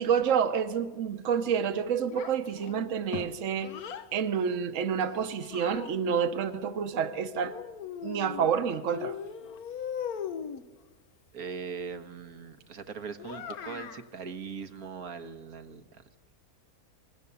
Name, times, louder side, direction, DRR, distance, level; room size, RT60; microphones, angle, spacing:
voice 1, 0.0-3.7 4.1-7.5 8.0-9.2, right 7 dB, 60° right, 10 dB, 1.3 m, -28 dB
Child speech kid speaking, 2.1-4.1 5.0-6.2 7.4-8.6 8.9-10.7 13.2-14.1, left 8 dB, 85° left, 1.4 m, -39 dB
voice 2, 11.3-16.0, right 6 dB, 80° right, 9 dB, 1.8 m, -40 dB
26.5 x 21.0 x 7.0 m, 1.2 s
omnidirectional pair, 1.5 m